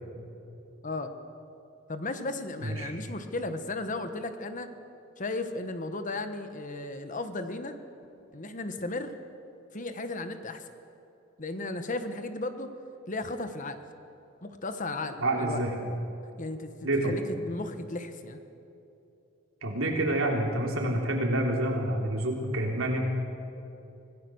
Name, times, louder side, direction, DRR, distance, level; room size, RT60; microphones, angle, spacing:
voice 1, 0.8-1.1 1.9-4.7 5.2-7.8 8.3-9.1 9.7-10.7 11.4-12.7 13.1-13.8 14.4-15.6 16.4-18.4, left 2 dB, 40° left, 8 dB, 1.2 m, -35 dB
voice 2, 2.6-2.9 15.2-15.7 16.8-17.2 19.6-23.0, right 1 dB, 75° right, 0 dB, 3.4 m, -28 dB
25.0 x 17.0 x 6.4 m, 2.8 s
head